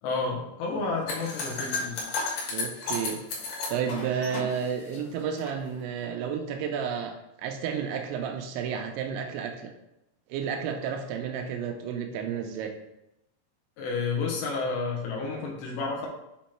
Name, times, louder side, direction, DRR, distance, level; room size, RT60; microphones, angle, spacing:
voice 1, 0.0-2.1 13.8-16.1, left 4 dB, 80° left, -1 dB, 2.9 m, -31 dB
sound 1, 1.1-5.5, left 3 dB, 65° left, 2.8 m, -33 dB
voice 2, 2.5-3.2 3.7-9.7 10.3-12.7, right 7 dB, 85° right, 4 dB, 2.8 m, -31 dB
7.7 x 3.0 x 4.4 m, 0.89 s
omnidirectional pair, 5.5 m